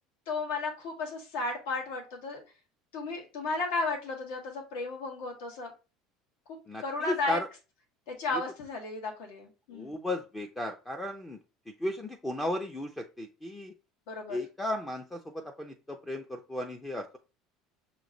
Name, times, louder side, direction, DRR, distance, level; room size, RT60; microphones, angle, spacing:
voice 1, 0.3-2.4 2.9-5.7 6.8-7.4 8.1-9.9 14.1-14.4, left 3 dB, 90° left, 2 dB, 1.5 m, -34 dB
voice 2, 6.7-7.5 8.3-8.4 9.7-11.4 11.8-13.7 14.3-17.2, left 1 dB, 10° left, 4 dB, 0.4 m, -35 dB
6.2 x 2.9 x 2.5 m, 0.31 s
cardioid pair, 160°, 0 cm